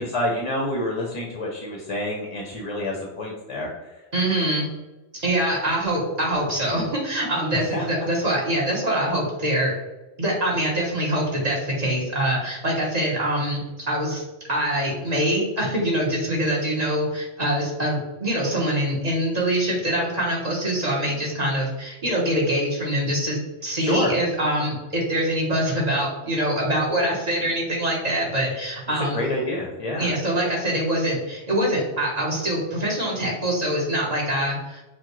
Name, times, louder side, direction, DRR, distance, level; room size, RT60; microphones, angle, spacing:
voice 1, 0.0-4.0 7.7-7.8 21.0-21.1 23.8-24.1 29.1-30.1, left 1 dB, 40° left, -1 dB, 0.6 m, -28 dB
voice 2, 4.1-4.7 5.1-9.7 10.2-13.6 13.9-29.2 30.0-34.8, right 1 dB, 40° right, -4 dB, 1.2 m, -24 dB
5.8 x 2.2 x 3.0 m, 1.1 s
omnidirectional pair, 1.1 m